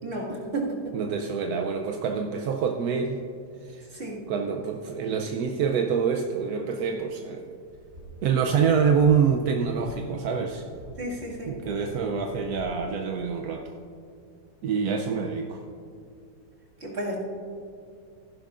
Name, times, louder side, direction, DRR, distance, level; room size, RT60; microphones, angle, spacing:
voice 1, 0.0-1.0 3.9-4.3 11.0-11.5 16.8-17.2, right 2 dB, 35° right, -4 dB, 2.3 m, -32 dB
voice 2, 0.9-3.2 3.6-3.9 4.1-7.5 8.2-10.6 11.5-13.7 14.6-15.6, right 6 dB, 70° right, 3 dB, 1.0 m, -26 dB
sound 1, 7.6-9.3 9.6-10.1 10.6-12.8, equal, 50° right, 3.3 m, -47 dB
15.0 x 11.0 x 2.5 m, 2.5 s
omnidirectional pair, 2.0 m